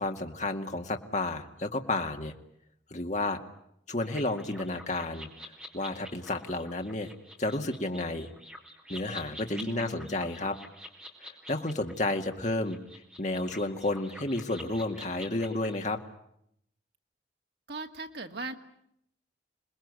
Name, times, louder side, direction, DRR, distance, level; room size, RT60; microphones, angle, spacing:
voice 1, 0.0-2.3 2.9-3.4 3.9-5.3 5.7-7.1 7.4-8.3 8.9-10.6 11.5-12.8 13.2-16.0, left 2 dB, 40° left, 4 dB, 2.2 m, -31 dB
sound 1, 4.0-15.8, equal, 5° right, 4.1 m, -47 dB
voice 2, 9.5-10.3 17.7-18.5, right 3 dB, 70° right, 5 dB, 2.4 m, -39 dB
28.0 x 20.5 x 9.7 m, 0.75 s
head